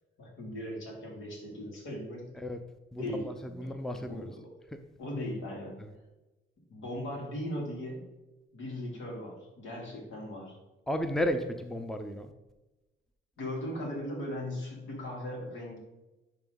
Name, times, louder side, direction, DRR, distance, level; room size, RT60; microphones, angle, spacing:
voice 1, 0.2-2.3 3.0-4.5 5.0-5.8 6.7-8.0 8.5-10.6 13.4-15.8, left 1 dB, 75° left, -1 dB, 2.6 m, -38 dB
voice 2, 3.6-4.2 10.9-12.3, equal, ahead, 8 dB, 0.6 m, -32 dB
10.5 x 3.5 x 3.9 m, 1.1 s
cardioid pair, 90°, 20 cm